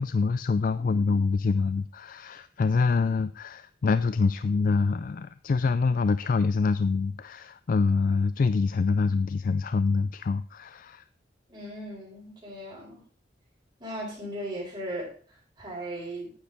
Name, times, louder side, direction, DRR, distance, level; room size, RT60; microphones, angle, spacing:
voice 1, 0.0-11.0, left 4 dB, 50° left, 13 dB, 0.4 m, -25 dB
voice 2, 11.5-13.0 13.8-16.3, right 1 dB, 20° right, -9 dB, 4.9 m, -37 dB
9.6 x 9.5 x 3.5 m, 0.41 s
head